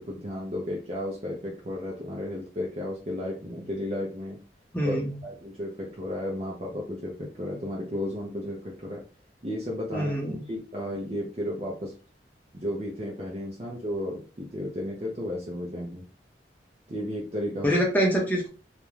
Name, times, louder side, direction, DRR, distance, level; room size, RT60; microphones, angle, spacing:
voice 1, 0.0-4.4 4.8-5.0 5.2-9.0 9.4-10.1 10.5-11.9 12.5-16.0 16.9-17.8, left 1 dB, 35° right, -2 dB, 0.5 m, -33 dB
voice 2, 4.7-5.2 9.9-10.5 17.6-18.5, equal, 10° left, -2 dB, 0.7 m, -25 dB
2.5 x 2.1 x 3.1 m, 0.36 s
head